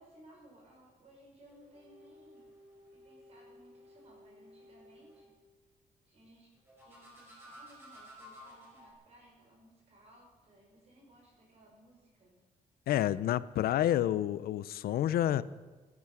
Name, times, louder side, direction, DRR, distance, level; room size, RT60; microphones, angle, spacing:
voice 1, 0.0-2.5 2.9-5.3 6.0-12.3, right 1 dB, 45° right, -2 dB, 6.1 m, -60 dB
sound 1, 1.5-5.3 6.7-8.9, equal, 15° right, 5.2 m, -55 dB
voice 2, 12.9-15.4, left 12 dB, 90° left, 17 dB, 0.5 m, -29 dB
14.0 x 10.5 x 8.4 m, 1.3 s
wide cardioid pair, 170°, 15 cm